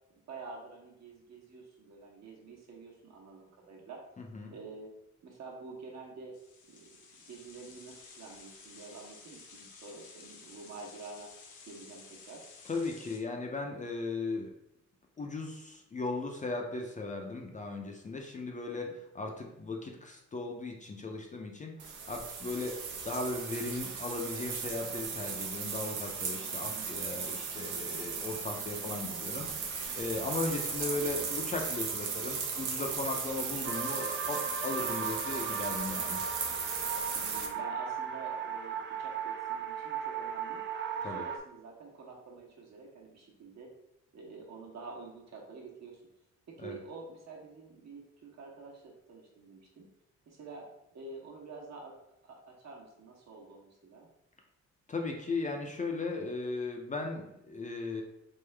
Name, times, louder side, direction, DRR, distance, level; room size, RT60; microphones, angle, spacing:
voice 1, 0.2-4.0 4.5-4.9 5.2-6.3 6.7-6.9 7.2-11.3 11.7-12.4 18.6-18.9 26.7-27.1 30.8-31.0 37.1-40.6 41.0-43.7 44.1-46.0 46.5-49.9 50.3-50.7 50.9-51.9 52.2-54.1, right 3 dB, 60° right, -1 dB, 1.2 m, -48 dB
voice 2, 4.2-4.5 12.7-14.5 15.2-29.5 30.0-36.2 41.0-41.2 46.6-46.8 54.9-58.0, left 3 dB, 25° left, 1 dB, 0.5 m, -37 dB
sound 1, 6.3-13.2, left 4 dB, 75° left, 0.9 m, -53 dB
sound 2, 21.8-37.5, right 5 dB, 75° right, 0.8 m, -37 dB
sound 3, 33.6-41.4, right 7 dB, 40° right, 0.4 m, -37 dB
3.7 x 3.6 x 3.3 m, 0.84 s
cardioid pair, 135°, 31 cm